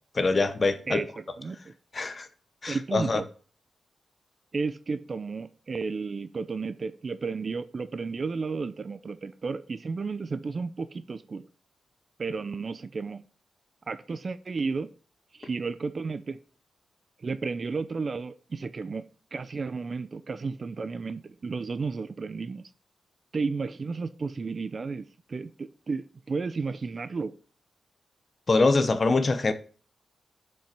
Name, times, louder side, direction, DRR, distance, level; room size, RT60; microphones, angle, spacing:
voice 1, 0.1-1.0 1.9-2.3 2.6-3.2 28.5-29.5, left 3 dB, 35° left, 1.0 m, -24 dB
voice 2, 0.9-1.7 2.7-3.3 4.5-11.5 12.2-13.2 13.9-14.9 15.3-16.4 17.2-22.7 23.3-27.3, right 4 dB, 45° right, 0.5 m, -33 dB
7.4 x 5.5 x 5.2 m
wide cardioid pair, 110°, 0 cm